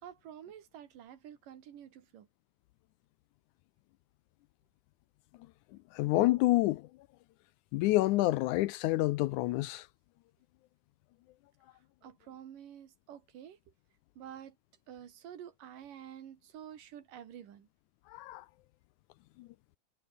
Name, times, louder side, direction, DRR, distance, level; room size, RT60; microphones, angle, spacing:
voice 1, 0.0-2.3 12.0-13.6 14.2-14.6 14.9-17.7, right 9 dB, 85° right, 3.7 m, -49 dB
voice 2, 5.9-6.9 7.7-9.9 18.1-18.5 19.4-19.5, left 18 dB, 80° left, 1.9 m, -28 dB
omnidirectional pair, 3.7 m